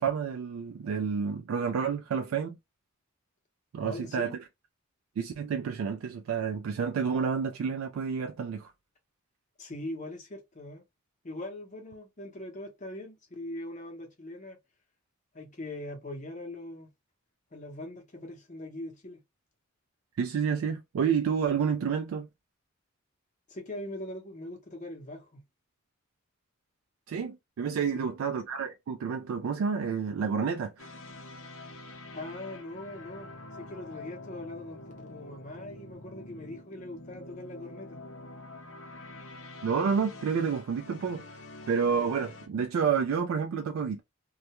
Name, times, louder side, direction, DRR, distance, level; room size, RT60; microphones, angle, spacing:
voice 1, 0.0-2.6 3.7-4.3 5.2-8.7 20.2-22.3 27.1-30.9 39.6-41.2 41.7-44.0, right 6 dB, 80° right, 0.3 m, -29 dB
voice 2, 3.8-4.4 9.6-10.8 11.2-14.6 15.3-16.9 17.5-19.2 23.5-25.4 27.9-28.0 32.1-38.0, left 1 dB, 35° left, 0.8 m, -41 dB
sound 1, 30.8-42.5, left 2 dB, 70° left, 0.6 m, -46 dB
2.3 x 2.1 x 2.8 m
head